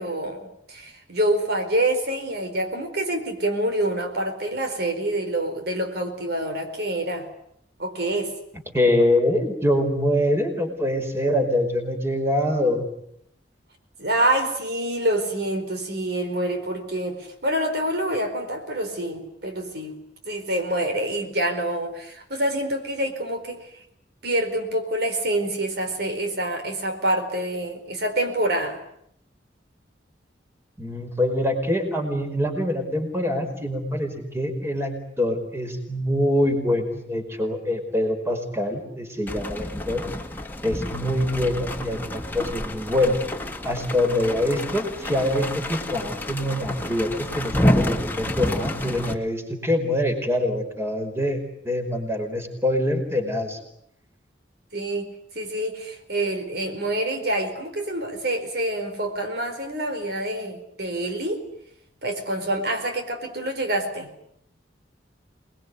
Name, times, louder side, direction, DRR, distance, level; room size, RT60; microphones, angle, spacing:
voice 1, 0.0-7.3 7.8-8.4 14.0-20.0 20.3-23.7 24.2-28.8 54.7-61.5 62.0-64.1, right 1 dB, 60° right, 5 dB, 4.5 m, -26 dB
voice 2, 8.7-12.9 30.8-40.0 40.6-43.2 43.6-51.4 51.6-53.6, left 1 dB, 15° right, 5 dB, 5.1 m, -24 dB
sound 1, 39.3-49.2, left 1 dB, 10° left, 2.2 m, -29 dB
27.5 x 21.0 x 9.7 m, 0.72 s
head